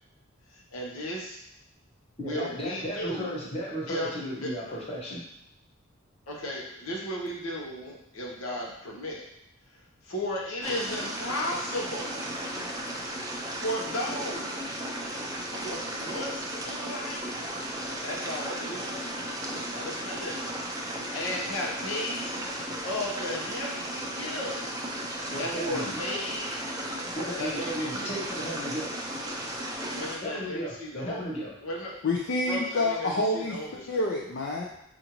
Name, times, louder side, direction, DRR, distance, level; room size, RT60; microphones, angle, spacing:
voice 1, 0.5-1.4 2.2-3.5 3.9-4.1 4.4-4.5 6.3-9.3 10.0-12.2 13.6-14.8 15.5-17.5 17.9-19.1 19.7-20.5 21.1-22.4 22.8-24.7 25.4-26.6 27.3-28.1 29.9-31.2 31.6-31.9 32.5-33.8, left 1 dB, 85° left, -2 dB, 0.9 m, -35 dB
voice 2, 2.2-5.2 14.1-14.2 25.3-26.0 27.2-29.0 30.2-31.5, equal, 30° left, -5 dB, 0.9 m, -35 dB
sound 1, 10.6-30.2, right 1 dB, 15° right, 0.5 m, -35 dB
voice 3, 32.0-33.6 33.9-34.6, left 2 dB, 55° left, -1 dB, 0.5 m, -27 dB
4.9 x 2.6 x 2.9 m, 0.80 s
head